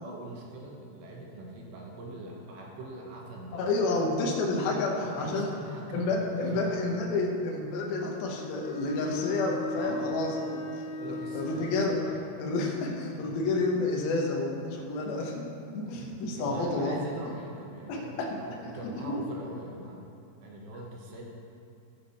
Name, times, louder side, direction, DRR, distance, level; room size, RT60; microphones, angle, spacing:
voice 1, 0.0-3.6 4.9-6.8 9.8-10.1 11.0-12.4 13.2-13.4 15.9-20.0 20.4-21.2, right 1 dB, 70° right, -2 dB, 3.3 m, -42 dB
voice 2, 3.5-5.5 5.9-12.0 12.4-15.4 15.7-17.0 17.9-18.1 18.6-18.7 19.0-19.1, left 2 dB, 65° left, -1 dB, 2.7 m, -30 dB
Bowed string instrument, 8.4-12.3, left 3 dB, 85° left, 3.1 m, -37 dB
15.5 x 7.5 x 4.3 m, 2.6 s
omnidirectional pair, 5.5 m